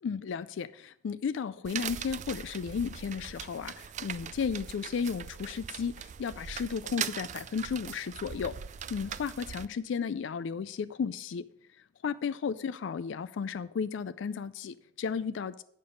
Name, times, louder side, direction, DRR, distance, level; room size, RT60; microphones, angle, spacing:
voice 1, 0.0-8.5 8.9-11.4 12.0-15.6, left 6 dB, 65° left, 0.3 m, -34 dB
sound 1, 1.6-9.7, right 8 dB, 40° right, 0.3 m, -40 dB
8.7 x 6.7 x 5.1 m
head